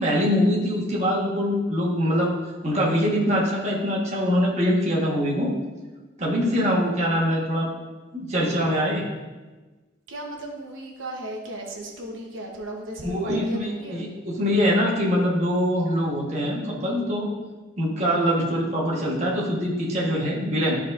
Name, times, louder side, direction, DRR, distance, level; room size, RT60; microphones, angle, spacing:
voice 1, 0.0-2.4 2.6-5.6 6.2-7.7 8.1-9.0 13.0-17.3 17.8-20.8, equal, 35° right, -4 dB, 1.3 m, -23 dB
voice 2, 10.1-14.0, right 1 dB, 85° right, 0 dB, 1.1 m, -35 dB
12.0 x 4.2 x 2.5 m, 1.2 s
head